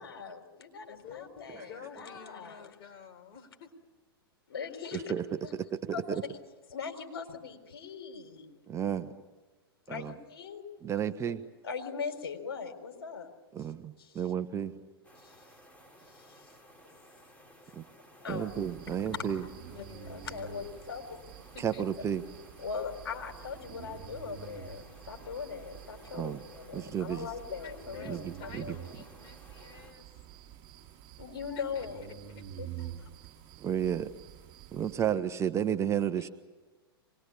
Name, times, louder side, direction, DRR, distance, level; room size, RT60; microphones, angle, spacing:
voice 1, 0.0-2.7 4.5-5.1 5.4-5.5 5.9-6.4 6.7-8.5 9.9-10.6 11.2-11.4 11.6-13.3 14.0-14.2 15.2-15.4 16.1-16.5 18.2-18.6 18.9-19.1 20.1-21.2 21.7-21.8 22.6-28.9 31.2-32.0 32.6-33.1, left 6 dB, 75° left, 4 dB, 4.1 m, -40 dB
voice 2, 0.9-3.7 19.4-20.3 21.5-21.8 27.6-30.1 31.6-31.9 32.3-32.4 36.2-36.3, left 7 dB, 40° left, 4 dB, 4.2 m, -49 dB
voice 3, 4.9-5.2 5.8-6.2 8.7-9.1 9.9-10.1 10.8-11.4 13.5-14.7 17.8-17.9 18.3-19.4 21.6-22.2 26.1-26.4 26.7-27.3 28.0-28.2 28.5-28.6 33.6-34.1 34.8-36.3, right 9 dB, 20° right, 9 dB, 1.1 m, -32 dB
sound 1, 15.0-29.9, equal, 10° left, 4.3 m, -57 dB
sound 2, 18.3-35.1, right 11 dB, 40° right, 4.9 m, -48 dB
25.0 x 20.5 x 8.6 m, 1.2 s
hypercardioid pair, 110°, 13 cm